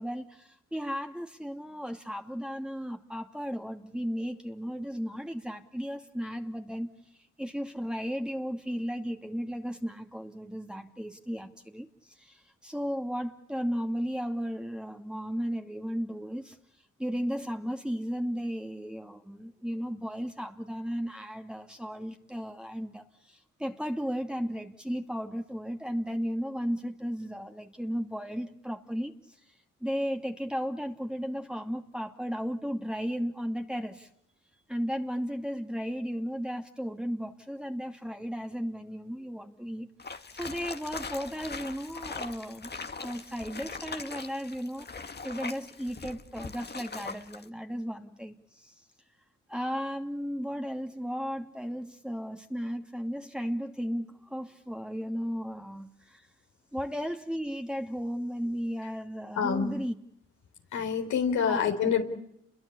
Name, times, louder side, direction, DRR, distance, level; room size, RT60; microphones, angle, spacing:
voice 1, 0.0-6.9 7.4-11.9 12.2-16.6 17.0-29.1 29.8-34.1 34.7-39.9 40.3-42.7 43.0-44.9 45.2-48.7 49.5-56.3 56.7-59.9 61.4-61.7, equal, 5° right, 3 dB, 2.7 m, -35 dB
sound 1, 40.0-47.5, left 4 dB, 35° left, 2.1 m, -41 dB
voice 2, 59.4-59.7 60.7-62.0, left 7 dB, 80° left, 4 dB, 4.1 m, -26 dB
30.0 x 22.5 x 8.7 m, 0.76 s
supercardioid pair, 50°, 29 cm